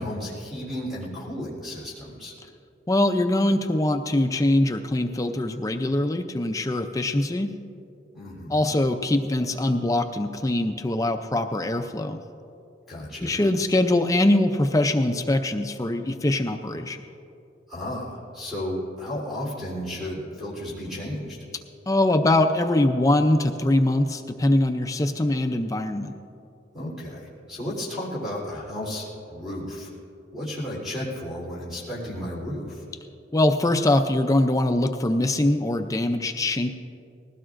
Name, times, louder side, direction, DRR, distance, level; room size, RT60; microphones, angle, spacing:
voice 1, 0.0-2.3 8.1-8.7 12.9-13.3 17.7-21.4 26.7-29.9 30.3-32.8, left 1 dB, ahead, -7 dB, 3.4 m, -33 dB
voice 2, 2.9-7.5 8.5-12.2 13.2-17.0 21.9-26.1 33.3-36.7, left 1 dB, 20° left, 6 dB, 0.4 m, -23 dB
20.0 x 17.0 x 2.5 m, 2.6 s
head